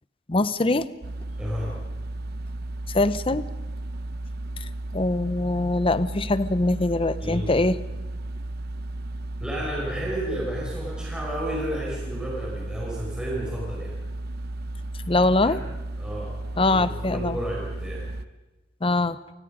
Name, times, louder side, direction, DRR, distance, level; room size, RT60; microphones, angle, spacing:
voice 1, 0.3-0.9 2.9-3.5 4.9-7.8 15.1-15.6 16.6-17.4 18.8-19.2, left 2 dB, 30° left, 14 dB, 0.8 m, -23 dB
sound 1, 1.0-18.3, right 1 dB, 55° right, 0.7 m, -34 dB
voice 2, 1.4-1.8 7.2-7.6 9.4-14.0 15.2-15.6 16.0-18.1, right 1 dB, 5° right, -4 dB, 5.1 m, -32 dB
30.0 x 20.0 x 5.1 m, 1.1 s
head